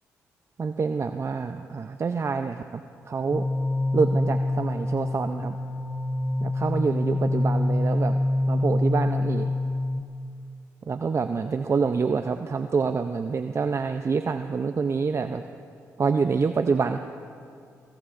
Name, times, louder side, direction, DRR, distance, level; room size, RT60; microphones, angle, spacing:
voice 1, 0.6-3.5 3.9-5.6 6.4-8.2 8.5-9.5 10.9-15.4 16.0-17.0, right 5 dB, 45° right, 8 dB, 0.6 m, -26 dB
sound 1, 3.3-10.0, left 2 dB, 20° left, 0.8 m, -26 dB
23.5 x 21.0 x 2.6 m, 2.3 s
supercardioid pair, 50°, 7 cm